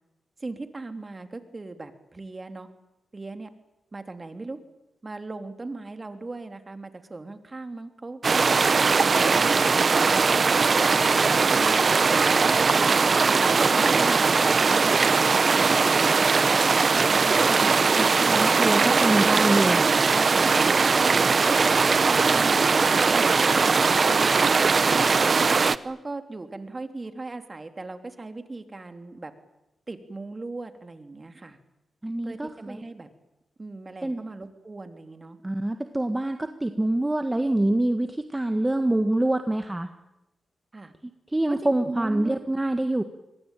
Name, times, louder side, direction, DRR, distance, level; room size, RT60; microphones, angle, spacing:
voice 1, 0.4-2.7 3.1-3.5 3.9-4.6 5.0-10.0 10.4-13.0 13.4-16.3 17.0-19.1 20.3-21.1 21.5-22.6 25.8-29.3 29.9-31.6 32.2-33.1 33.6-35.4 40.7-40.9 41.5-42.4, right 3 dB, 30° right, 8 dB, 3.2 m, -38 dB
sound 1, 8.2-25.8, right 4 dB, 50° right, 1.0 m, -20 dB
voice 2, 18.0-19.8 32.0-32.8 34.0-34.2 35.4-39.9 41.3-43.0, right 1 dB, 15° right, 8 dB, 1.8 m, -25 dB
26.0 x 22.0 x 9.2 m, 0.92 s
cardioid pair, 65°, 0 cm